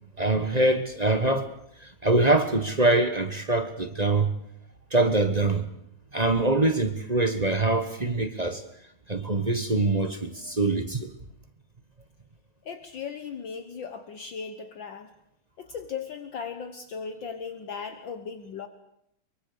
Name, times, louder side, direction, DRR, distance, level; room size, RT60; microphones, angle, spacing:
voice 1, 0.2-1.5 1.8-4.3 4.9-5.7 6.1-8.6 9.1-11.1, right 2 dB, 25° right, 1.0 m, -24 dB
voice 2, 12.6-15.1 15.6-18.7, left 6 dB, 60° left, 1.8 m, -37 dB
23.5 x 23.5 x 6.8 m
omnidirectional pair, 2.4 m